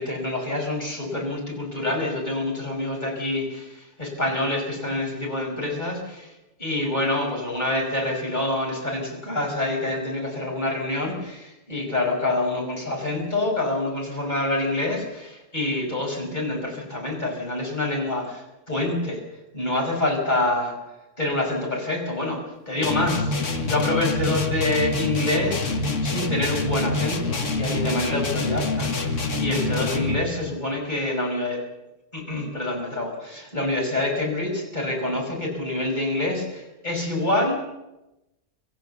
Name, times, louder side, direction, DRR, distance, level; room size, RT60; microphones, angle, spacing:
voice 1, 0.0-6.3 6.6-19.2 19.5-20.7 21.2-22.4 22.7-23.3 23.6-31.6 32.1-37.5, left 2 dB, 30° left, -1 dB, 6.0 m, -26 dB
sound 1, 22.8-30.3, left 3 dB, 60° left, 2.0 m, -26 dB
25.5 x 14.5 x 7.0 m, 0.97 s
omnidirectional pair, 1.5 m